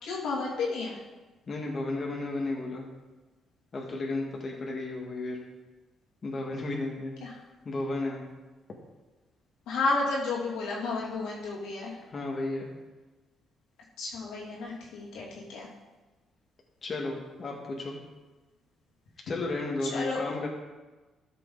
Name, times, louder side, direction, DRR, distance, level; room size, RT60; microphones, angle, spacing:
voice 1, 0.0-1.0 7.2-7.3 9.7-12.0 14.0-15.7 19.8-20.2, left 3 dB, 90° left, -4 dB, 2.5 m, -32 dB
voice 2, 1.5-2.9 3.7-5.4 6.2-7.2 7.7-8.2 12.1-12.7 16.8-18.0 19.3-20.5, left 2 dB, 40° left, -1 dB, 1.8 m, -33 dB
13.0 x 6.7 x 3.9 m, 1.2 s
cardioid pair, 90°, 0 cm